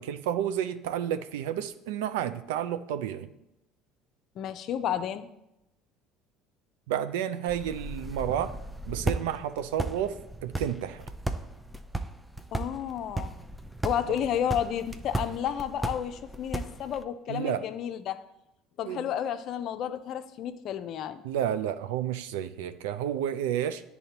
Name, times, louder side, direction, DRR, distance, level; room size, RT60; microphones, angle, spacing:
voice 1, 0.0-3.3 6.9-8.5 8.9-11.0 17.3-17.7 18.8-19.0 21.2-23.8, right 10 dB, 80° right, 12 dB, 0.4 m, -31 dB
voice 2, 4.4-5.3 12.5-13.4 13.8-18.2 18.8-21.2, left 9 dB, 60° left, 10 dB, 0.5 m, -31 dB
sound 1, 7.5-17.0, right 2 dB, 5° right, 0.5 m, -36 dB
10.0 x 4.1 x 2.9 m, 0.87 s
hypercardioid pair, 70°, 0 cm